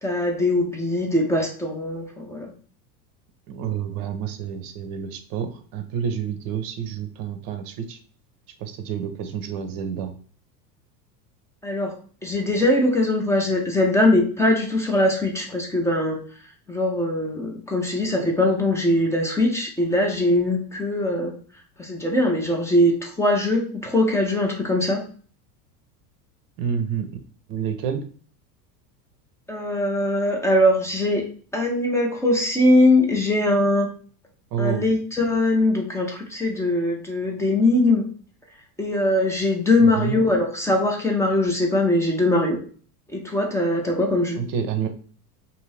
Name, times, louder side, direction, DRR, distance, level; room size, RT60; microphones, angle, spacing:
voice 1, 0.0-2.5 11.6-11.9 12.2-16.2 16.7-21.3 21.8-25.0 29.5-31.2 31.5-33.9 34.6-38.0 38.8-42.6 43.1-44.4, left 1 dB, 5° left, 1 dB, 0.4 m, -21 dB
voice 2, 3.5-8.0 8.6-10.1 26.6-27.1 27.5-28.0 34.5-34.9 39.8-40.2 44.4-44.9, right 7 dB, 45° right, 8 dB, 0.6 m, -28 dB
2.7 x 2.6 x 3.1 m, 0.43 s
hypercardioid pair, 95°, 49 cm